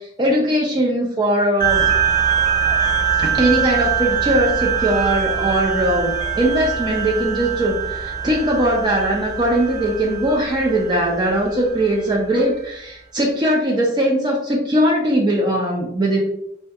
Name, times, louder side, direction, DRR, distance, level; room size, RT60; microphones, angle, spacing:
voice 1, 0.0-1.9 3.2-16.2, right 1 dB, 25° right, -2 dB, 0.3 m, -20 dB
sound 1, 1.6-12.5, right 7 dB, 25° left, 0.6 m, -23 dB
2.2 x 2.2 x 2.6 m, 0.76 s
head